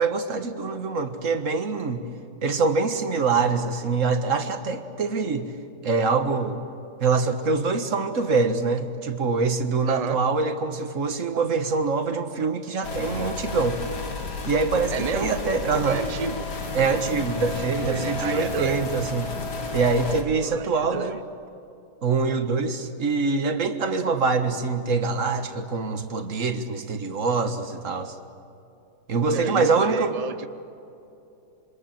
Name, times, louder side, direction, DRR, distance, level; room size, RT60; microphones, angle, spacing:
voice 1, 0.0-2.0 2.4-5.5 5.8-6.6 7.0-13.8 14.5-16.0 16.7-19.3 19.7-21.2 22.0-28.1 29.1-30.1, right 4 dB, 45° right, 8 dB, 1.6 m, -24 dB
voice 2, 9.9-10.2 14.9-15.4 15.7-16.5 17.4-18.8 20.4-21.2 29.3-30.5, right 5 dB, 85° right, 11 dB, 0.3 m, -31 dB
sound 1, 12.8-20.2, left 3 dB, 65° left, 2.7 m, -32 dB
27.0 x 24.5 x 7.6 m, 2.7 s
omnidirectional pair, 2.0 m